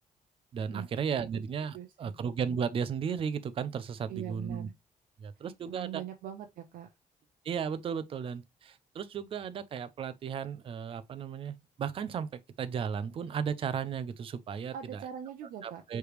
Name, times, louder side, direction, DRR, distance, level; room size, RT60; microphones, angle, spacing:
voice 1, 0.5-4.7 5.2-6.0 7.4-15.0 15.6-16.0, right 7 dB, 40° right, 0.5 m, -35 dB
voice 2, 1.7-2.1 4.1-4.7 5.7-6.9 14.7-15.8, right 10 dB, 75° right, 0.7 m, -42 dB
4.9 x 3.3 x 3.1 m
cardioid pair, 150°, 14 cm